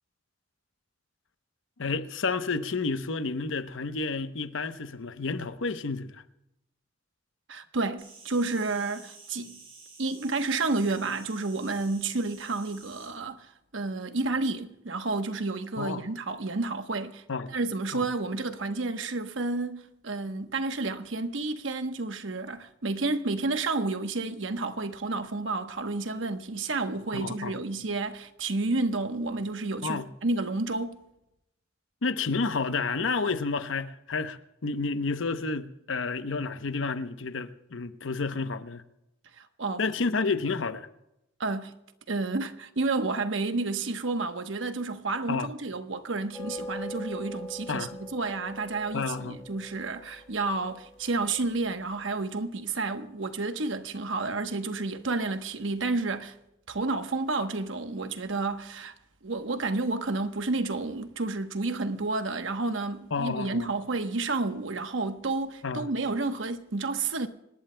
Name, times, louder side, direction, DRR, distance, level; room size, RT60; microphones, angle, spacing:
voice 1, 1.8-6.2 15.8-16.0 17.3-17.6 17.9-18.0 27.1-27.6 29.8-30.1 32.0-38.8 39.8-40.9 45.3-45.5 47.7-47.9 48.9-49.4 63.1-63.7 65.6-65.9, left 4 dB, 80° left, 0.8 m, -30 dB
voice 2, 7.5-9.6 10.0-13.5 13.7-17.2 17.5-31.0 39.4-39.8 41.4-41.7 42.1-56.3 56.7-58.9 59.2-67.3, right 3 dB, 75° right, 1.0 m, -30 dB
Insect, 8.0-13.1, right 4 dB, 30° right, 5.7 m, -51 dB
sound 1, 46.3-51.8, left 1 dB, ahead, 4.9 m, -42 dB
26.0 x 19.0 x 2.2 m
head